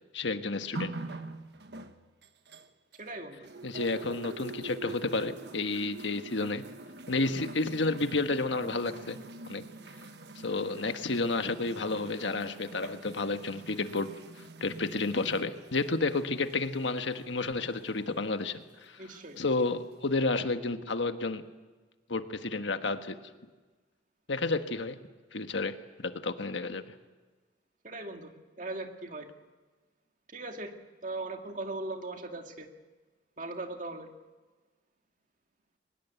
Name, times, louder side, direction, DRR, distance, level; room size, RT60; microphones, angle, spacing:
voice 1, 0.1-1.0 3.6-6.6 7.1-9.2 9.5-9.7 10.3-14.1 14.4-19.0 19.4-21.4 22.1-23.2 24.3-25.0 25.3-26.8, left 3 dB, 80° left, 8 dB, 1.4 m, -31 dB
sound 1, 0.7-3.1 3.4-18.2 19.0-19.1, right 2 dB, 65° right, 1.3 m, -45 dB
voice 2, 3.0-3.5 19.0-19.5 27.8-29.3 30.3-30.8 31.0-32.7 33.4-34.1, right 2 dB, 45° right, 4 dB, 2.2 m, -39 dB
23.5 x 20.0 x 8.4 m, 1.3 s
head